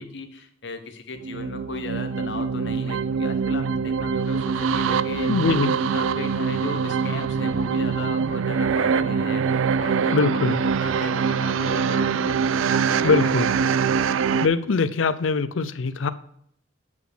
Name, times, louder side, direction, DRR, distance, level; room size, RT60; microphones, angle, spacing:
voice 1, 0.0-5.5 5.8-12.3 12.7-13.7, left 3 dB, 60° left, 8 dB, 0.9 m, -37 dB
sound 1, 1.2-14.5, right 6 dB, 80° right, 0.3 m, -24 dB
voice 2, 5.3-5.7 10.1-10.6 13.0-13.5 14.4-16.1, left 4 dB, 75° left, 15 dB, 0.5 m, -22 dB
8.3 x 5.1 x 5.0 m, 0.70 s
head